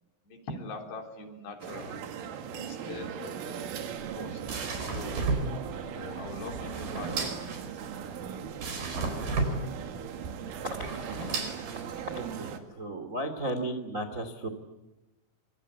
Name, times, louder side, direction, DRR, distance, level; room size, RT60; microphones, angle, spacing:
voice 1, 0.3-2.1 2.5-3.8 4.2-4.4 4.8-5.3 5.8-7.7, left 3 dB, 60° left, 4 dB, 5.4 m, -43 dB
sound 1, 1.6-12.6, right 8 dB, 75° right, 4.6 m, -39 dB
sound 2, 3.9-12.3, right 3 dB, 50° right, 6.2 m, -34 dB
voice 2, 12.1-14.5, right 1 dB, 30° right, 9 dB, 1.5 m, -35 dB
27.0 x 26.0 x 8.5 m, 1.1 s
omnidirectional pair, 5.8 m